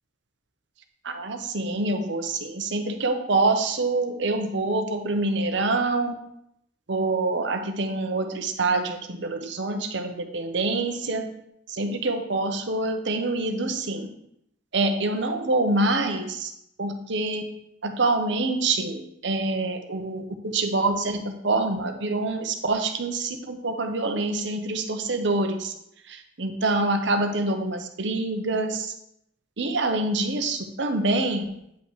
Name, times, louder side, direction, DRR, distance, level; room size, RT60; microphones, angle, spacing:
voice 1, 1.0-6.1 6.9-11.3 11.7-14.1 14.7-16.5 16.8-17.4 17.8-21.2 21.4-25.7 26.1-28.9 29.6-31.5, right 2 dB, 60° right, 6 dB, 0.9 m, -26 dB
9.0 x 5.6 x 3.2 m, 0.76 s
head